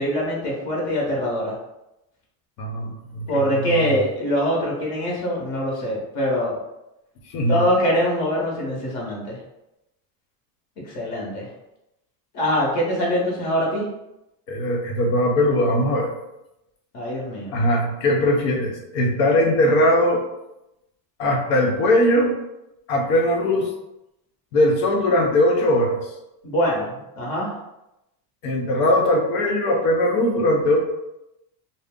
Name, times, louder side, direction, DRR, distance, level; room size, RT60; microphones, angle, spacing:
voice 1, 0.0-1.5 3.3-6.6 7.5-9.4 10.8-11.5 12.3-13.9 16.9-17.6 26.4-27.5, equal, 50° left, -3 dB, 1.0 m, -23 dB
voice 2, 2.6-4.0 7.3-7.6 14.5-16.1 17.5-20.2 21.2-22.3 22.9-23.7 24.5-26.0 28.4-30.8, left 1 dB, 85° left, 0 dB, 0.9 m, -20 dB
2.5 x 2.0 x 3.6 m, 0.90 s
cardioid pair, 145°, 47 cm